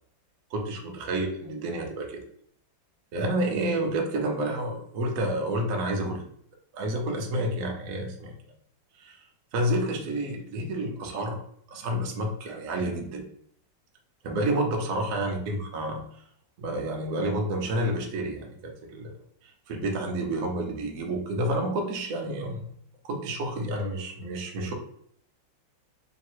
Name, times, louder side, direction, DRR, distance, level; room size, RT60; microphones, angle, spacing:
voice 1, 0.5-2.2 3.1-6.3 6.7-8.3 9.0-9.2 9.5-11.4 11.7-13.2 14.2-16.0 16.6-19.1 19.4-22.7 23.0-24.7, right 1 dB, 55° right, 1 dB, 1.0 m, -29 dB
3.3 x 3.0 x 4.4 m, 0.65 s
omnidirectional pair, 2.1 m